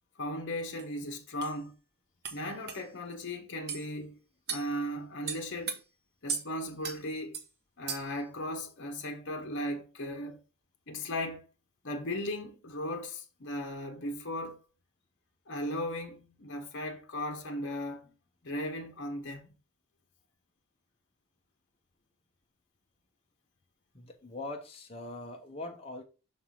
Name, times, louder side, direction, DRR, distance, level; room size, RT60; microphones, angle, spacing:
voice 1, 0.2-1.7 2.3-4.2 4.5-5.8 6.2-7.4 7.8-10.4 10.9-11.4 11.8-14.6 15.5-18.1 18.4-19.5, left 1 dB, 55° left, 1.1 m, -37 dB
sound 1, 0.8-0.9 1.4-1.5 2.2-2.4 2.7-2.8 3.7-3.8 4.5-4.7 5.3-5.8 6.3-6.5 6.8-7.0 7.3-7.5 7.9-8.2, right 6 dB, 50° right, 1.0 m, -36 dB
voice 2, 23.9-26.0, left 2 dB, 25° left, 0.9 m, -42 dB
6.0 x 3.4 x 5.7 m
head